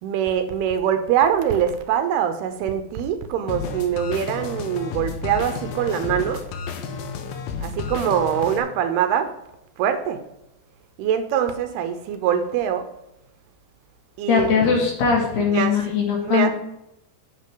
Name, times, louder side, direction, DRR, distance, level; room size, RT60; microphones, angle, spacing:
voice 1, 0.0-6.4 7.6-9.3 9.8-10.2 11.0-12.9 14.2-14.7 15.4-15.9 16.2-16.5, right 9 dB, 75° right, 8 dB, 2.5 m, -23 dB
sound 1, 3.5-8.6, left 5 dB, 80° left, 3.2 m, -31 dB
voice 2, 14.3-16.5, left 6 dB, 65° left, -1 dB, 4.3 m, -20 dB
9.9 x 8.3 x 3.8 m, 0.87 s
omnidirectional pair, 5.2 m